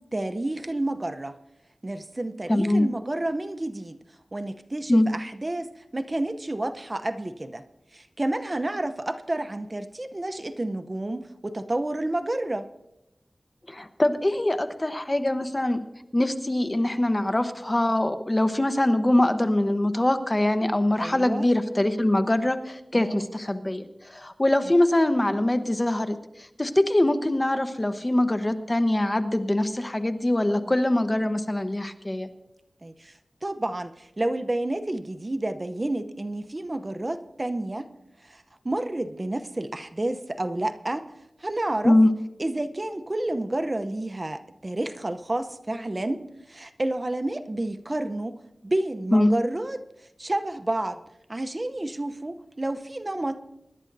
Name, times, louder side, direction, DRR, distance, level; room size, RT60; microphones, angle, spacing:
voice 1, 0.1-1.4 1.8-4.0 4.3-7.6 7.9-12.7 15.8-15.9 21.0-21.5 22.9-23.3 30.6-30.7 32.8-33.1 33.4-37.9 38.2-41.1 41.4-42.0 42.4-48.4 48.6-49.8 50.2-51.0 51.3-53.4, right 1 dB, 40° right, 10 dB, 0.7 m, -30 dB
voice 2, 2.5-2.9 4.9-5.1 13.7-15.8 16.1-32.3 41.8-42.1 49.1-49.3, left 1 dB, 30° left, 9 dB, 1.0 m, -23 dB
25.0 x 11.5 x 2.7 m, 0.88 s
wide cardioid pair, 45°, 0 cm